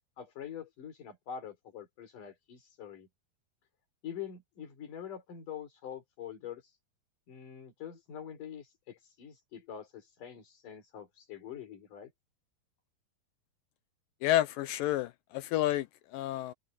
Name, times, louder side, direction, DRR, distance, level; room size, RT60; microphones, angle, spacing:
voice 1, 0.2-3.1 4.0-6.8 7.3-12.1, left 9 dB, 55° left, 5.2 m, -45 dB
voice 2, 14.2-15.9 16.1-16.5, left 14 dB, 80° left, 2.1 m, -29 dB
omnidirectional pair, 4.4 m